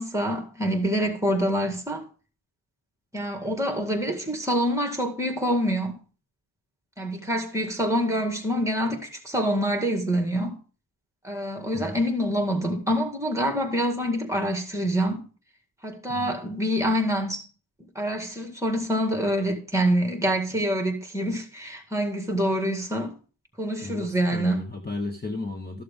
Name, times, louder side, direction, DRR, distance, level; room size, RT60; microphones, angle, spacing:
voice 1, 0.0-2.0 3.1-6.0 7.0-10.6 11.2-15.2 15.8-17.4 18.0-23.2 23.6-24.7, equal, 5° right, 1.9 m, -26 dB
voice 2, 23.8-25.8, left 2 dB, 20° left, 1.1 m, -34 dB
13.5 x 6.7 x 3.6 m
wide cardioid pair, 110°, 48 cm